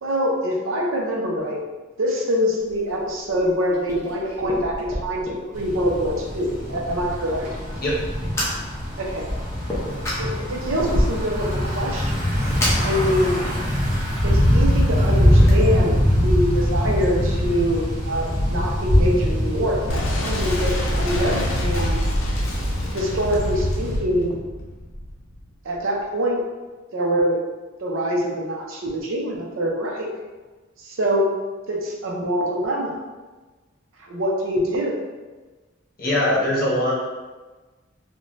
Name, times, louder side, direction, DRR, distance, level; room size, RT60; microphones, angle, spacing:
voice 1, 0.0-1.6 2.0-7.5 9.0-9.3 10.2-12.5 12.8-13.4 14.2-22.1 22.9-24.4 25.6-26.4 26.9-27.4 27.8-30.1 30.8-31.3 31.7-33.0 34.0-35.0, equal, 85° right, 0 dB, 0.5 m, -24 dB
Fire, 2.6-15.5, equal, 15° left, 0.6 m, -32 dB
Thunder / Bicycle, 5.5-24.0, equal, 40° right, 0.6 m, -23 dB
Boom, 19.9-25.4, left 1 dB, 80° left, 0.5 m, -25 dB
voice 2, 36.0-36.9, left 1 dB, 45° left, -6 dB, 0.8 m, -21 dB
3.0 x 2.1 x 2.5 m, 1.3 s
head